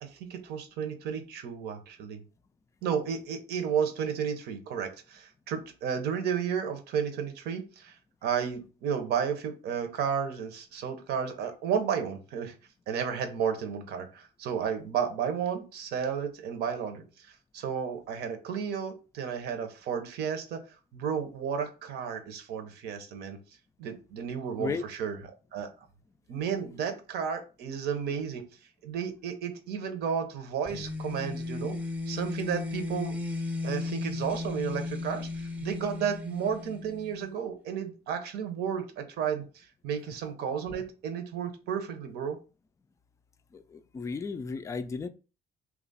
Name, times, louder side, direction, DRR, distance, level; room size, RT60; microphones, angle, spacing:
voice 1, 0.0-2.2 2.8-8.0 8.2-12.5 12.9-20.6 20.9-23.4 23.8-25.2 25.5-25.7 26.3-28.4 28.8-31.8 32.1-33.2 33.6-42.4, right 7 dB, 75° right, 0.8 m, -32 dB
sound 1, 30.7-37.3, left 3 dB, 10° right, 0.6 m, -35 dB
voice 2, 43.5-45.1, left 4 dB, 20° left, 0.3 m, -34 dB
3.0 x 2.4 x 4.0 m
cardioid pair, 110°, 17 cm